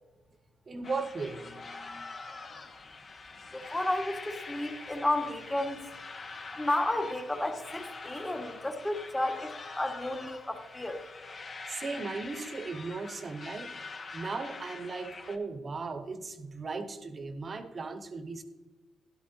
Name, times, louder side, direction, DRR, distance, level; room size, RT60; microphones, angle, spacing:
voice 1, 0.7-2.1 11.7-13.7 14.1-18.4, right 4 dB, 45° right, 9 dB, 1.2 m, -37 dB
sound 1, 0.8-15.4, left 3 dB, 45° left, 1.4 m, -45 dB
voice 2, 3.5-5.9 6.5-11.0, left 1 dB, 15° left, 4 dB, 1.7 m, -32 dB
12.5 x 11.5 x 2.8 m, 1.2 s
supercardioid pair, 60°, 0 cm